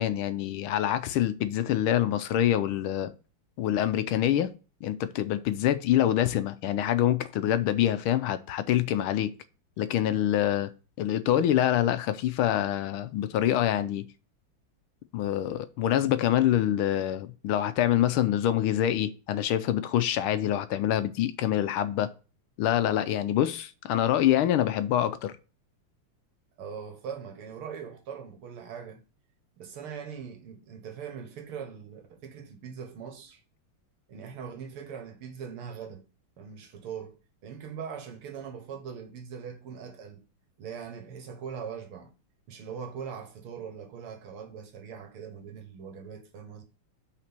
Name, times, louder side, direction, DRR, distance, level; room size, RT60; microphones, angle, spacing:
voice 1, 0.0-3.1 3.6-4.5 4.8-9.3 9.8-10.7 11.0-14.0 15.1-22.1 22.6-25.3, left 11 dB, 80° left, 1.5 m, -25 dB
voice 2, 26.6-29.0 29.6-33.4 34.1-36.1 36.4-40.2 40.6-42.1 42.5-46.6, right 7 dB, 80° right, 2.2 m, -41 dB
5.9 x 4.3 x 5.9 m
omnidirectional pair, 2.4 m